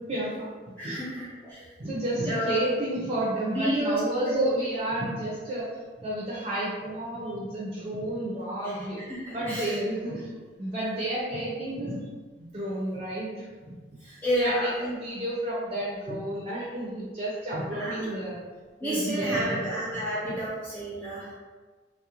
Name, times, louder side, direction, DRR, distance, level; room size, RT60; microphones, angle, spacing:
voice 1, 0.1-0.5 0.8-1.1 1.4-1.5 1.8-5.7 6.0-9.0 9.3-10.3 10.6-12.0 12.4-13.7 14.0-18.4 18.8-20.0 20.3-20.4, right 1 dB, 30° right, -6 dB, 0.4 m, -31 dB
voice 2, 0.8-1.6 2.3-2.6 3.5-4.0 4.3-4.5 9.1-9.7 14.2-14.7 17.7-18.1 18.8-21.3, equal, 10° left, -9 dB, 0.8 m, -30 dB
2.4 x 2.0 x 2.8 m, 1.4 s
head